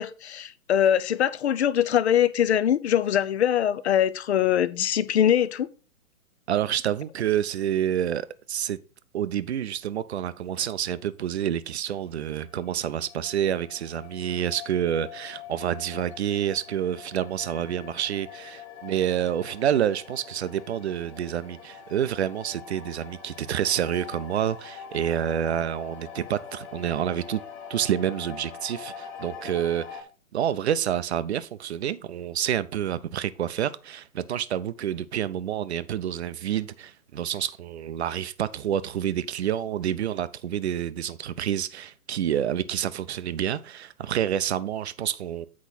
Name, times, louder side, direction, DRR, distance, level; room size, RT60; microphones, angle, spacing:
voice 1, 0.0-5.7, left 10 dB, 50° left, 0.6 m, -23 dB
voice 2, 6.5-8.8 9.1-27.4 27.7-30.0 30.3-45.5, right 10 dB, 50° right, 0.6 m, -28 dB
sound 1, 12.0-30.0, left 7 dB, 25° left, 1.5 m, -44 dB
8.4 x 4.7 x 4.2 m
hypercardioid pair, 140°, 44 cm